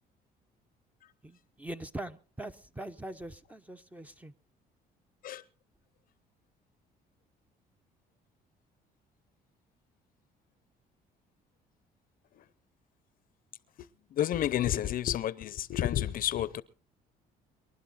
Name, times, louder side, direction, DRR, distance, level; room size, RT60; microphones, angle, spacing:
voice 1, 1.2-4.3, right 1 dB, 10° right, 0.8 m, -42 dB
voice 2, 13.8-16.6, left 11 dB, 55° left, 0.7 m, -31 dB
24.0 x 11.5 x 4.0 m
cardioid pair, 110°, 17 cm